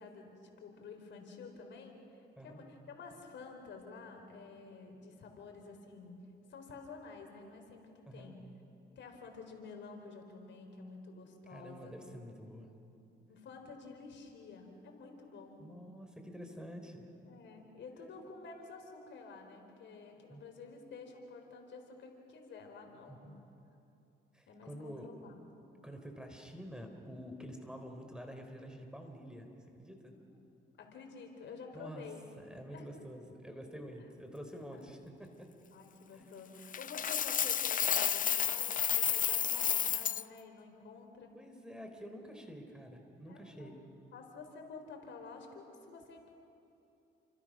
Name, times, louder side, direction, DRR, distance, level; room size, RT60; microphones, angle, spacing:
voice 1, 0.0-6.2 6.5-8.4 9.0-12.0 13.3-15.6 17.3-23.2 24.5-25.6 30.1-30.2 30.8-32.2 32.7-32.9 34.7-34.8 35.7-41.3 43.3-43.7 44.1-46.3, left 4 dB, 65° left, 3 dB, 4.3 m, -50 dB
voice 2, 11.5-12.7 15.6-17.1 20.3-20.4 23.1-23.4 24.3-25.1 25.8-30.1 31.7-32.0 32.4-35.5 36.1-36.3 41.3-43.8, equal, 5° right, 4 dB, 3.6 m, -48 dB
Coin (dropping), 36.7-40.2, left 8 dB, 45° left, 0.6 m, -31 dB
29.5 x 25.5 x 6.3 m, 2.9 s
cardioid pair, 90°, 20 cm